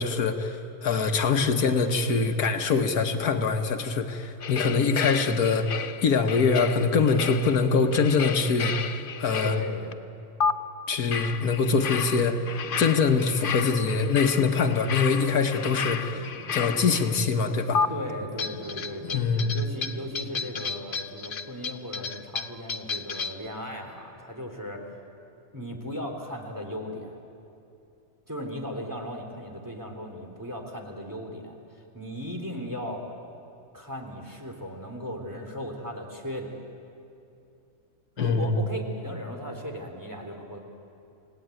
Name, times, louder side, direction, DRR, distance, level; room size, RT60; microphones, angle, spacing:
voice 1, 0.0-8.7 9.2-9.6 10.9-12.4 12.8-17.8 19.1-19.5 38.2-38.7, left 4 dB, 75° left, 6 dB, 1.7 m, -24 dB
Garage Percussion Loops, 4.4-9.9 10.4-10.5 11.1-17.2 17.7-17.9 18.4-23.5, left 6 dB, 50° left, 0.7 m, -32 dB
voice 2, 9.4-10.0 17.9-19.2 19.5-25.0 25.5-27.2 28.3-33.0 33.7-36.6 38.2-40.6, equal, 10° right, 1 dB, 3.1 m, -37 dB
sound 1, 12.2-20.4, equal, 60° right, 5.7 m, -45 dB
29.0 x 18.0 x 9.1 m, 2.7 s
omnidirectional pair, 1.6 m